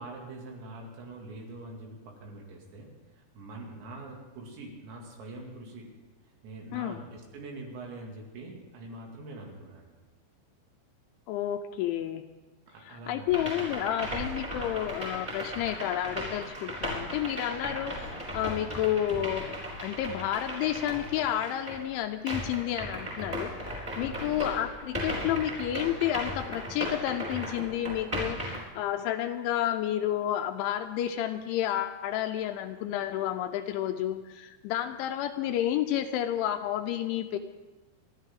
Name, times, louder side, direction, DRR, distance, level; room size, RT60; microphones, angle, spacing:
voice 1, 0.0-6.0 6.2-9.9 12.7-13.6 14.0-14.2 24.1-24.4, right 2 dB, 70° right, 0 dB, 4.6 m, -44 dB
voice 2, 11.3-12.2 12.9-37.4, left 11 dB, 80° left, 7 dB, 2.9 m, -31 dB
sound 1, 13.3-21.9 22.3-28.6, equal, 10° right, 3.7 m, -37 dB
28.0 x 12.0 x 3.7 m, 1.2 s
omnidirectional pair, 5.6 m